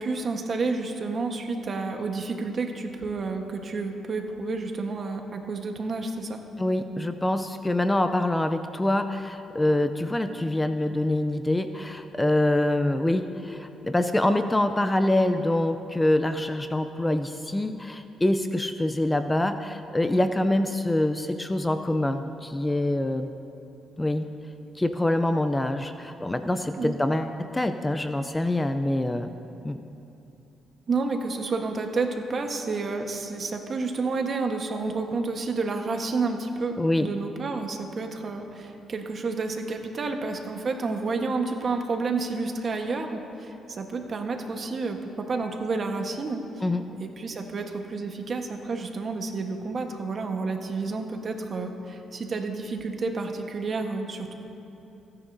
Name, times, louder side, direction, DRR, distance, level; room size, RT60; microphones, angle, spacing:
voice 1, 0.0-6.4 26.8-26.9 30.9-46.4 47.0-54.4, right 3 dB, 45° right, 4 dB, 1.3 m, -30 dB
voice 2, 6.6-23.3 24.0-24.3 24.8-29.3 29.6-29.8 36.8-37.1 46.6-46.9, left 1 dB, 15° left, 8 dB, 0.5 m, -25 dB
27.0 x 9.8 x 2.7 m, 3.0 s
cardioid pair, 90°, 0 cm